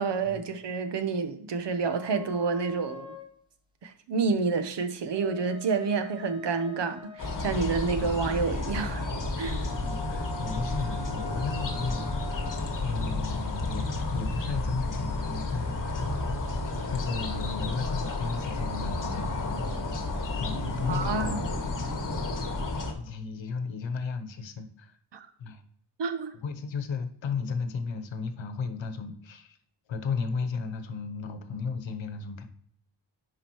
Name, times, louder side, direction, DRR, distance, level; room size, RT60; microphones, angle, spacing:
voice 1, 0.0-3.2 3.8-9.1 9.4-9.7 20.9-21.6 25.1-25.3 26.0-26.3, right 4 dB, 65° right, 1.0 m, -29 dB
sound 1, 1.8-3.4 4.9-7.8 9.6-12.7, left 3 dB, 10° right, 0.9 m, -44 dB
sound 2, 7.2-22.9, left 2 dB, 45° left, 1.4 m, -31 dB
voice 2, 9.8-12.5 12.8-16.1 16.6-19.6 20.3-21.5 21.9-22.1 23.0-25.0 25.4-25.6 26.4-29.6 29.9-32.4, left 5 dB, 90° left, 1.0 m, -34 dB
9.9 x 4.9 x 3.1 m
wide cardioid pair, 130°, 44 cm